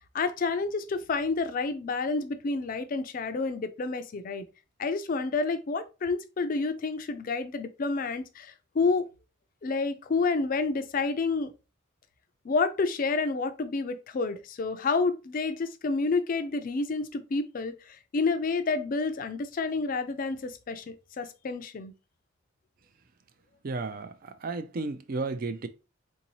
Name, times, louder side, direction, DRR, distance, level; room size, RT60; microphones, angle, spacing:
voice 1, 0.1-4.4 4.8-9.1 9.6-11.5 12.4-21.9, left 4 dB, 45° left, 0.4 m, -29 dB
voice 2, 23.6-25.7, right 3 dB, 45° right, 0.4 m, -33 dB
3.7 x 2.7 x 2.9 m
head